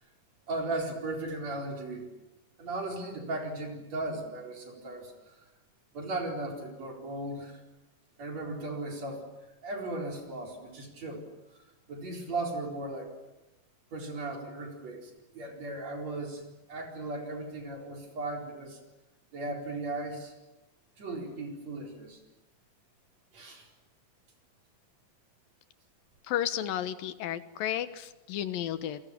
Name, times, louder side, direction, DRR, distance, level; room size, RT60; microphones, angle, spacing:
voice 1, 0.5-2.1 2.6-5.4 5.9-7.6 8.2-9.3 9.6-11.3 11.5-11.6 11.9-13.1 13.9-16.4 16.7-18.8 19.3-20.3 21.0-22.2 23.3-23.7, right 2 dB, 50° right, 2 dB, 5.4 m, -37 dB
voice 2, 26.2-29.0, left 11 dB, 85° left, 12 dB, 3.1 m, -33 dB
29.0 x 23.0 x 8.7 m, 1.0 s
omnidirectional pair, 3.9 m